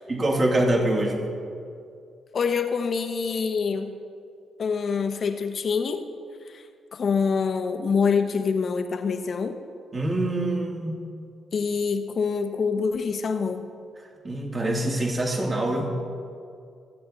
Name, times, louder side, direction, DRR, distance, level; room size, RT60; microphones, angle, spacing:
voice 1, 0.1-1.2 9.9-11.0 14.2-15.9, right 1 dB, 35° right, 0 dB, 2.8 m, -25 dB
voice 2, 2.3-3.9 4.6-6.0 6.5-6.6 6.9-9.6 11.5-13.7, left 5 dB, 55° left, 7 dB, 1.1 m, -25 dB
25.5 x 8.5 x 4.1 m, 2.3 s
hypercardioid pair, 40°, 0 cm